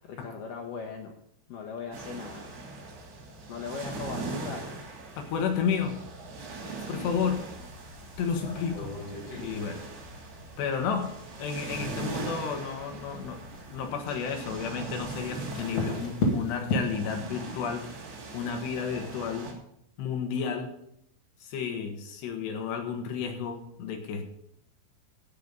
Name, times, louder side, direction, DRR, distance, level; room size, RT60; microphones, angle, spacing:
voice 1, 0.1-1.2 1.5-2.5 3.5-4.8, left 5 dB, 90° left, 1 dB, 1.9 m, -39 dB
sound 1, 1.9-19.5, right 3 dB, 75° right, 5.5 m, -41 dB
voice 2, 5.2-6.0 6.7-7.4 8.2-8.9 9.4-9.8 10.6-11.1 11.4-13.4 13.7-18.0 18.3-19.5 20.0-20.7 21.4-24.3, left 6 dB, 65° left, 3 dB, 3.4 m, -32 dB
sound 2, 6.4-16.8, left 2 dB, 45° left, 2.5 m, -37 dB
16.0 x 6.7 x 5.5 m, 0.74 s
omnidirectional pair, 5.6 m